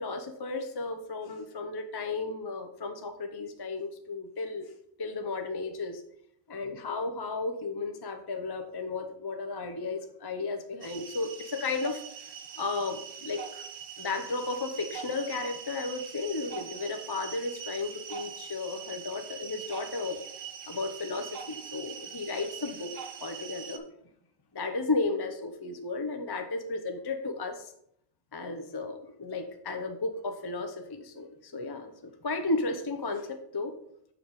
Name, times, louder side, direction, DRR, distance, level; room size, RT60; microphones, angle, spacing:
voice 1, 0.0-4.7 5.0-6.0 6.5-12.0 12.6-13.6 14.0-20.2 20.7-22.9 23.2-23.8 24.5-27.7 28.3-31.9 32.2-33.7, left 3 dB, 30° left, 6 dB, 0.5 m, -34 dB
sound 1, 10.8-23.8, right 7 dB, 75° right, 1.1 m, -43 dB
6.9 x 5.2 x 4.7 m, 0.71 s
omnidirectional pair, 1.3 m